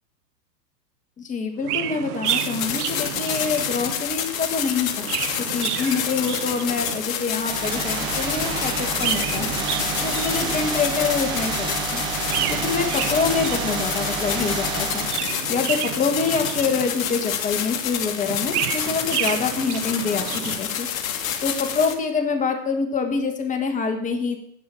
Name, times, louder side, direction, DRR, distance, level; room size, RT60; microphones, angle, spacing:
voice 1, 1.2-5.1 5.4-9.6 10.0-12.0 12.5-15.1 15.5-20.9 21.4-24.5, left 5 dB, 15° left, 5 dB, 1.6 m, -26 dB
Chirp tweet, 1.6-4.1 4.8-7.2 8.7-10.9 12.2-14.1 14.9-17.2 18.2-20.8, right 13 dB, 65° right, 0.8 m, -31 dB
sound 1, 2.3-21.9, left 9 dB, 55° left, 1.8 m, -28 dB
sound 2, 7.4-15.3, right 5 dB, 10° right, 0.4 m, -29 dB
9.8 x 6.2 x 8.7 m, 0.70 s
hypercardioid pair, 135°, 50 cm